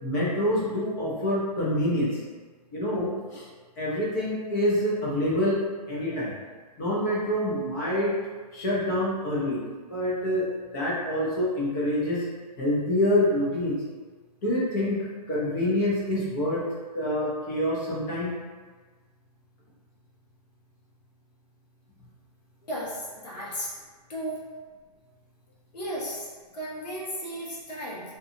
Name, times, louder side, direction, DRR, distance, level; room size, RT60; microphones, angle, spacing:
voice 1, 0.0-2.1 2.7-3.4 3.8-6.3 6.8-8.1 8.5-9.6 9.9-10.4 10.7-12.2 12.6-13.7 14.4-15.0 15.3-16.6 16.9-18.3, left 1 dB, 25° left, -6 dB, 0.6 m, -26 dB
voice 2, 22.7-23.7 24.1-24.4 25.7-26.3 26.5-28.2, equal, 75° left, -6 dB, 1.1 m, -34 dB
2.8 x 2.3 x 2.6 m, 1.4 s
hypercardioid pair, 160°, 21 cm